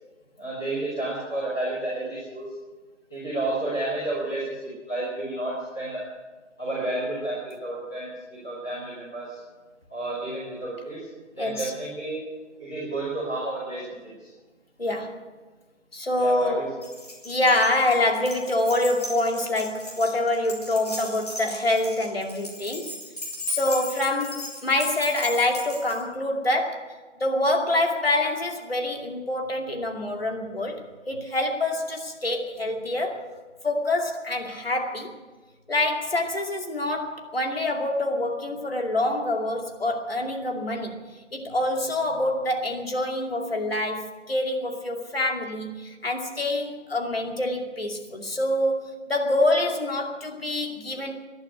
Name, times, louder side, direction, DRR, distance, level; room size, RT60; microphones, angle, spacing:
voice 1, 0.4-2.4 3.1-6.0 6.6-9.4 9.9-11.1 11.3-12.2 12.6-14.3 16.2-16.7, right 2 dB, 5° left, -13 dB, 1.4 m, -31 dB
voice 2, 11.4-11.7 14.8-15.3 15.9-16.7 17.2-22.9 23.5-30.8 31.1-33.3 33.6-35.1 35.7-41.0 41.3-51.3, left 1 dB, 50° left, 3 dB, 2.5 m, -26 dB
Keys jangling, 16.8-26.0, left 1 dB, 30° left, 3.2 m, -37 dB
16.0 x 11.5 x 8.0 m, 1.3 s
figure-of-eight pair, 170°, 37 cm